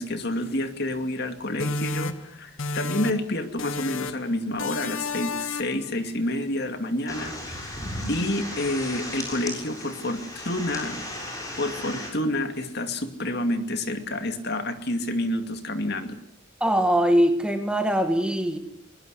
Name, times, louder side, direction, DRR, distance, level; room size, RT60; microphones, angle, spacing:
voice 1, 0.0-7.7 8.1-11.0 11.6-16.2, left 1 dB, 50° left, 7 dB, 2.4 m, -29 dB
sound 1, 1.6-3.3 3.6-4.3 4.6-5.9, left 3 dB, 80° left, 1.4 m, -31 dB
sound 2, 7.1-12.1, left 1 dB, 15° left, 6.8 m, -35 dB
voice 2, 16.6-18.6, equal, 5° right, 6 dB, 2.1 m, -22 dB
22.0 x 22.0 x 8.2 m, 0.71 s
head